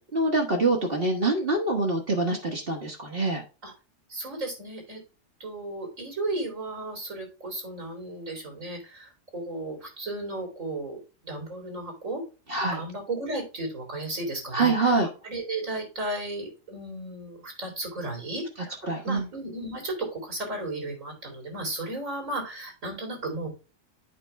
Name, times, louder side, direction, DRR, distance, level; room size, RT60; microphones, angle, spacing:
voice 1, 0.1-3.4 12.5-12.8 14.5-15.1 18.9-19.3, right 3 dB, 45° right, 0 dB, 1.4 m, -25 dB
voice 2, 4.1-5.0 5.4-12.2 12.7-18.8 19.0-23.5, right 2 dB, 90° right, 2 dB, 3.8 m, -34 dB
8.5 x 5.2 x 3.3 m, 0.32 s
omnidirectional pair, 1.3 m